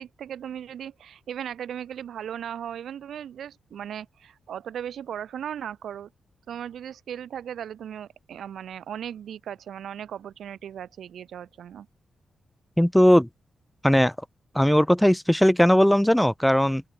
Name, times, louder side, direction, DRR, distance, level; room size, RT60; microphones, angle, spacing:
voice 1, 0.0-6.1 6.5-11.9, right 9 dB, 85° right, 1.9 m, -37 dB
voice 2, 12.8-13.3 13.8-14.1 14.5-16.8, equal, 5° left, 0.5 m, -18 dB
open air
wide cardioid pair, 180°, 0 cm